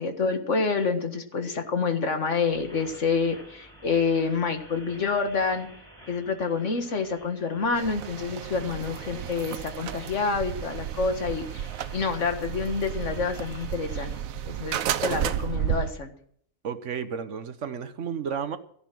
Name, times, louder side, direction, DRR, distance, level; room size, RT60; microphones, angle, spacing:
voice 1, 0.0-5.7 6.1-11.7 11.9-14.1 14.5-16.1, left 4 dB, 60° left, 6 dB, 1.9 m, -28 dB
sound 1, 2.5-14.2, equal, 5° left, 5.7 m, -50 dB
sound 2, 7.7-15.9, right 10 dB, 85° right, 1.1 m, -32 dB
voice 2, 16.6-18.6, right 7 dB, 65° right, 11 dB, 1.3 m, -32 dB
14.5 x 10.5 x 6.2 m, 0.65 s
omnidirectional pair, 1.4 m